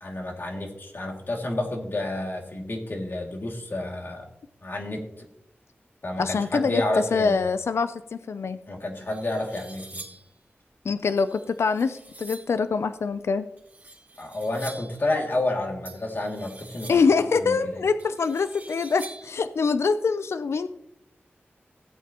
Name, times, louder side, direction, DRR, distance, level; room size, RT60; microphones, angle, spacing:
voice 1, 0.0-4.3 4.6-5.3 6.0-7.5 8.7-10.0 14.2-17.8, left 2 dB, 55° left, 1 dB, 2.4 m, -30 dB
voice 2, 6.2-6.8 7.1-8.6 10.8-13.5 16.9-20.7, left 5 dB, 85° left, 12 dB, 0.5 m, -24 dB
sound 1, 8.4-8.5 9.0-10.3 11.2-12.6 13.6-15.0 15.8-17.2 18.0-19.4, right 2 dB, 40° right, 2.7 m, -45 dB
16.5 x 8.6 x 3.0 m, 0.77 s
wide cardioid pair, 75°, 4 cm